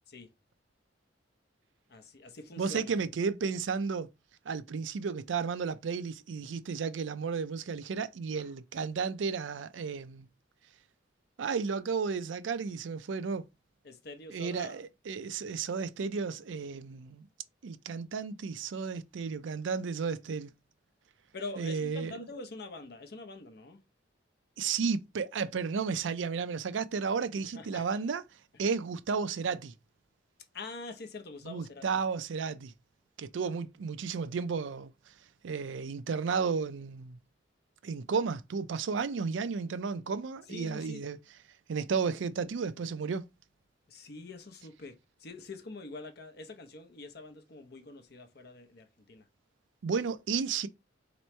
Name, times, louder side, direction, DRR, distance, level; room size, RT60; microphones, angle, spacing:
voice 1, 1.9-2.9 8.4-8.5 13.8-14.8 21.3-23.8 27.5-28.0 30.5-31.8 40.5-41.0 43.9-49.2, left 3 dB, 60° left, 0.8 m, -45 dB
voice 2, 2.6-4.1 4.5-10.3 11.4-13.5 14.3-17.3 17.6-20.5 21.6-22.2 24.6-28.2 28.6-29.7 31.4-32.7 33.2-34.9 35.4-37.2 37.8-41.2 41.7-43.2 49.8-50.7, right 5 dB, 85° right, 0.4 m, -33 dB
3.1 x 3.0 x 4.3 m
head